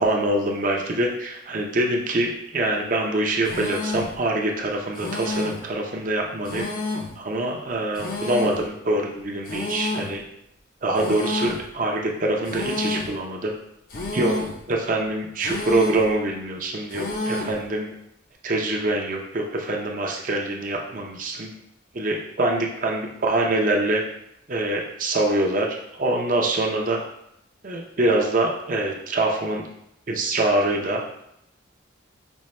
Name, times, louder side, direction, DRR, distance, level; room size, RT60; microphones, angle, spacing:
voice 1, 0.0-6.7 7.2-10.2 10.8-13.5 14.1-14.3 14.7-17.9 18.4-21.5 21.9-24.0 24.5-25.7 25.9-27.0 27.6-29.6 30.1-31.0, right 2 dB, 40° right, 0 dB, 0.5 m, -24 dB
sound 1, 3.5-4.2 5.0-5.7 6.5-7.2 8.0-8.7 9.5-10.2 11.0-11.7 12.5-13.2 13.9-14.6 15.4-16.1 16.9-17.6, left 2 dB, 45° left, 0.6 m, -29 dB
5.3 x 2.2 x 3.1 m, 0.77 s
head